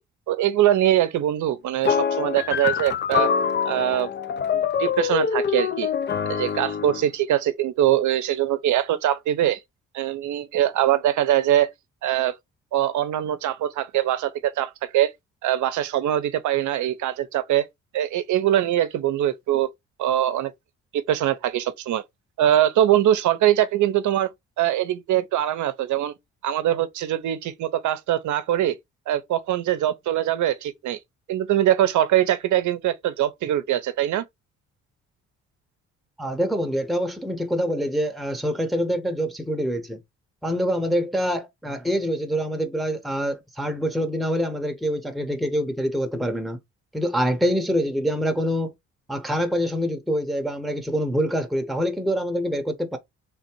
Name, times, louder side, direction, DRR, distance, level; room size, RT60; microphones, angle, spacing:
voice 1, 0.3-3.3 3.6-4.1 4.5-5.9 6.3-9.6 9.9-11.7 12.0-12.4 12.7-15.1 15.4-17.7 17.9-19.7 20.0-20.5 20.9-22.0 22.4-24.3 24.6-26.1 26.4-28.7 29.1-31.0 31.3-34.2, right 12 dB, 75° right, 0.7 m, -22 dB
sound 1, 1.8-7.1, left 7 dB, 35° left, 0.4 m, -25 dB
voice 2, 36.2-40.0 40.4-46.6 46.9-48.7 49.1-53.0, equal, ahead, 0.8 m, -25 dB
3.5 x 2.5 x 4.4 m
cardioid pair, 90°, 30 cm